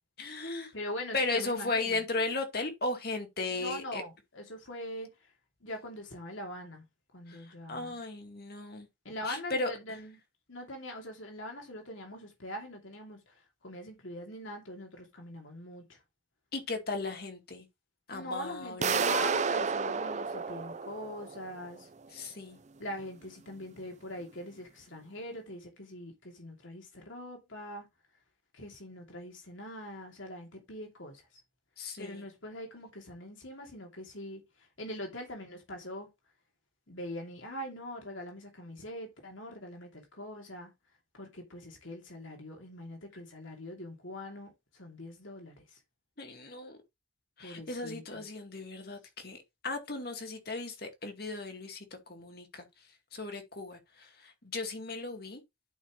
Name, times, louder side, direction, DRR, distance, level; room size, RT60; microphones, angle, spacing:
voice 1, 0.2-0.7 1.1-4.0 7.3-8.9 9.2-9.7 16.5-17.7 18.1-19.3 22.1-22.6 31.8-32.2 46.2-46.8 47.4-52.7 53.1-55.4, left 3 dB, 50° left, 2.1 m, -36 dB
voice 2, 0.7-2.0 3.5-5.3 5.6-6.8 7.1-8.0 9.0-10.2 10.5-16.0 18.1-21.9 22.8-27.9 28.5-31.2 32.0-34.4 34.8-36.1 36.9-40.7 41.1-45.8 47.4-48.2, left 1 dB, 85° left, 2.7 m, -42 dB
sound 1, 18.8-21.7, right 5 dB, 35° right, 0.5 m, -31 dB
11.0 x 5.7 x 3.2 m
head